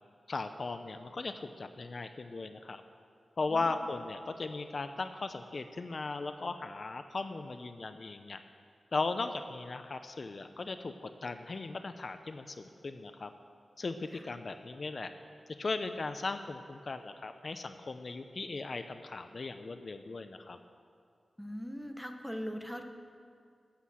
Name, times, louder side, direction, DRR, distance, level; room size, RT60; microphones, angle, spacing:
voice 1, 0.3-2.8 3.4-8.4 8.9-13.3 13.8-15.1 15.6-20.6, left 3 dB, 55° left, 9 dB, 0.5 m, -37 dB
voice 2, 21.4-22.8, equal, ahead, 5 dB, 1.0 m, -40 dB
11.5 x 8.2 x 7.5 m, 2.3 s
wide cardioid pair, 75°, 0 cm